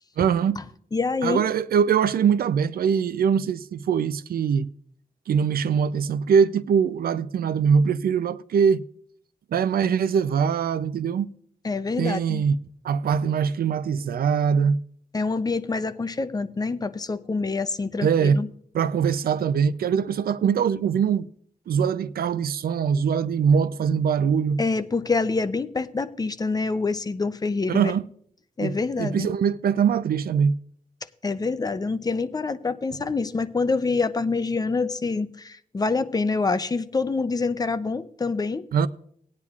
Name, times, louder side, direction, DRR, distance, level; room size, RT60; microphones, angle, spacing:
voice 1, 0.2-0.6 1.2-4.7 5.3-8.8 9.5-11.3 12.0-12.6 12.8-14.8 18.0-18.4 18.7-21.3 21.7-24.6 27.7-28.0 28.6-30.5 38.7-38.9, right 7 dB, 85° right, 0.5 m, -22 dB
voice 2, 0.9-1.4 11.6-12.4 15.1-18.5 24.6-27.9 28.6-29.3 31.2-38.6, left 4 dB, 25° left, 0.5 m, -26 dB
18.5 x 9.7 x 2.4 m
wide cardioid pair, 145°, 15 cm